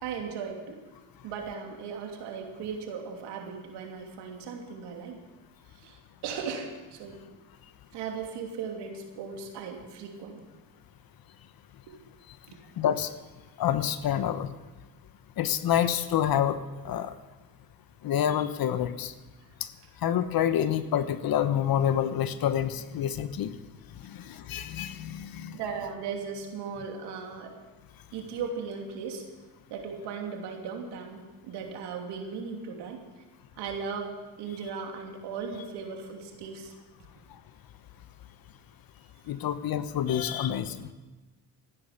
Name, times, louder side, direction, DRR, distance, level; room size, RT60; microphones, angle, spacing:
voice 1, 0.0-0.9 1.2-5.2 5.7-7.4 7.9-10.4 11.9-12.0 12.5-12.6 25.5-27.6 28.1-29.2 29.7-33.2 33.6-36.7, right 5 dB, 80° right, 2 dB, 2.9 m, -37 dB
voice 2, 12.8-13.1 13.6-14.5 15.4-16.6 16.8-17.1 18.0-19.1 20.0-23.5 24.0-25.6 39.3-40.9, left 10 dB, 60° left, 12 dB, 1.1 m, -27 dB
14.5 x 10.5 x 7.2 m, 1.2 s
supercardioid pair, 85°, 40 cm